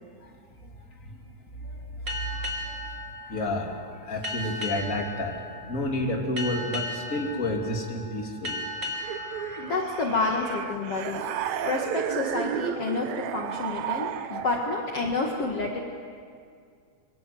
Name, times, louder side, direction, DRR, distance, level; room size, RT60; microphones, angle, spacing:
voice 1, 1.6-2.2 2.6-8.6 14.1-14.4, left 1 dB, 25° left, 1 dB, 3.2 m, -31 dB
sound 1, 2.1-11.2, left 1 dB, 30° right, 2.3 m, -37 dB
sound 2, 9.0-14.9, right 10 dB, 75° right, 2.2 m, -33 dB
voice 2, 9.6-11.2 11.6-15.8, left 3 dB, 55° left, 0 dB, 2.7 m, -29 dB
27.0 x 23.5 x 7.8 m, 2.2 s
omnidirectional pair, 3.4 m